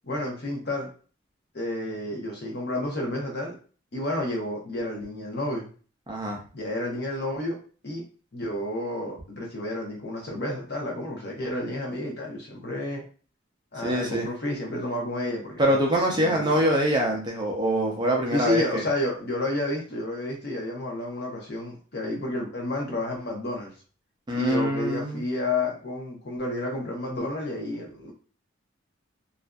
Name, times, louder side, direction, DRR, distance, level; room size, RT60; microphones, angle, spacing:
voice 1, 0.0-0.9 1.5-3.6 3.9-5.7 6.5-7.6 7.8-8.0 8.3-13.0 13.7-15.8 16.1-16.7 18.3-23.7 24.3-28.1, left 1 dB, 55° left, 0 dB, 0.8 m, -30 dB
voice 2, 6.1-6.4 13.8-14.3 15.6-18.8 24.3-25.2, right 1 dB, 20° right, 0 dB, 0.5 m, -24 dB
2.6 x 2.4 x 2.2 m, 0.39 s
head